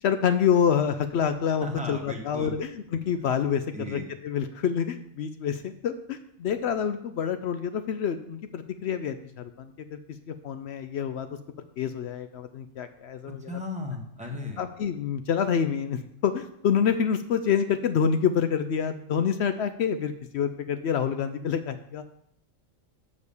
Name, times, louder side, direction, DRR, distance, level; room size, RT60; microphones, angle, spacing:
voice 1, 0.0-10.0 10.3-11.3 11.8-13.4 14.6-22.1, left 7 dB, 65° left, 9 dB, 0.7 m, -27 dB
voice 2, 1.6-2.5 3.7-4.1 13.3-14.6, left 2 dB, 5° right, 0 dB, 1.1 m, -36 dB
6.3 x 5.0 x 6.9 m, 0.73 s
omnidirectional pair, 1.4 m